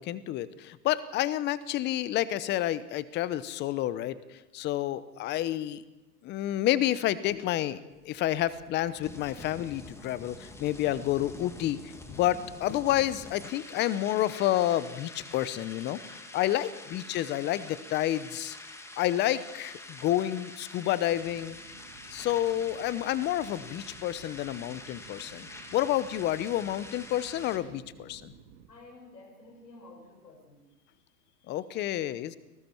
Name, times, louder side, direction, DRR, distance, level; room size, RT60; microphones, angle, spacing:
voice 1, 0.0-4.2 4.5-5.8 6.2-16.0 16.3-18.6 19.0-21.6 22.1-28.3 31.5-32.4, left 13 dB, 20° left, 17 dB, 0.8 m, -29 dB
sound 1, 7.9-27.6, left 2 dB, 5° left, 1.6 m, -47 dB
voice 2, 16.6-17.1 28.7-30.7, left 2 dB, 85° left, 2 dB, 6.2 m, -52 dB
sound 2, 21.1-28.7, right 7 dB, 50° right, 2.7 m, -54 dB
30.0 x 19.0 x 4.6 m, 1.1 s
hypercardioid pair, 125°, 48 cm